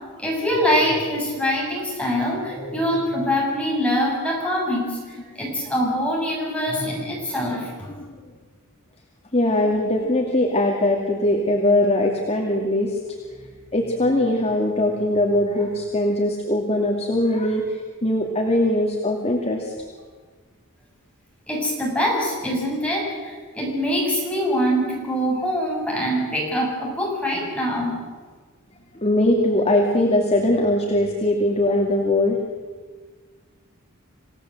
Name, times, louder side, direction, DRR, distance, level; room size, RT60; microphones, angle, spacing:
voice 1, 0.2-7.9 21.5-27.9, equal, 5° left, -3 dB, 7.4 m, -24 dB
voice 2, 9.3-13.0 13.7-19.7 29.0-32.4, left 1 dB, 30° left, 0 dB, 2.5 m, -21 dB
28.0 x 17.0 x 7.9 m, 1.5 s
head